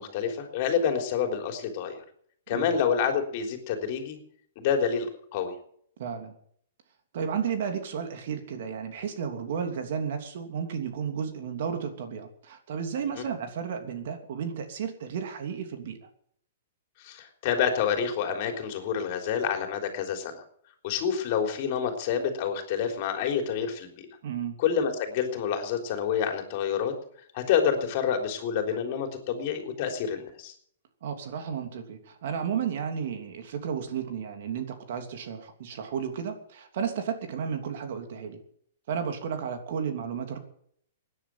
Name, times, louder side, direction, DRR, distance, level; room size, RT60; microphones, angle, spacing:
voice 1, 0.0-2.0 2.5-4.2 4.6-5.5 13.2-13.3 17.0-20.4 20.8-24.1 24.6-26.9 27.3-30.5, left 7 dB, 45° left, 4 dB, 3.6 m, -28 dB
voice 2, 6.0-6.3 7.1-16.0 24.2-24.6 31.0-38.4 38.9-40.4, right 7 dB, 60° right, 6 dB, 3.0 m, -33 dB
17.0 x 10.0 x 7.6 m, 0.64 s
hypercardioid pair, 145°, 0 cm